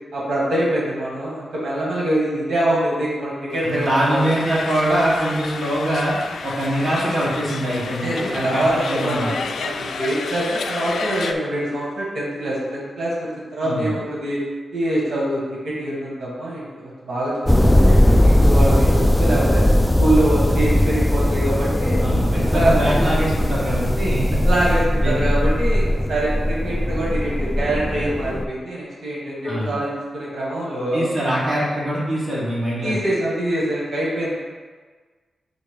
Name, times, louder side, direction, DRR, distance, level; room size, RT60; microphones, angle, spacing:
voice 1, 0.1-4.2 7.8-14.4 14.7-19.6 20.0-22.0 22.3-22.7 24.4-31.0 32.8-34.3, right 1 dB, 65° right, -6 dB, 1.6 m, -24 dB
sound 1, 3.5-11.3, left 5 dB, 80° left, 0.4 m, -31 dB
voice 2, 3.6-6.2 6.4-9.3 13.6-14.0 22.0-24.4 25.0-25.3 29.4-29.8 30.9-33.0, right 1 dB, 25° right, -7 dB, 2.0 m, -23 dB
sound 2, 17.5-28.4, left 1 dB, 10° left, 0.4 m, -18 dB
6.4 x 3.2 x 5.2 m, 1.4 s
wide cardioid pair, 115°, 0 cm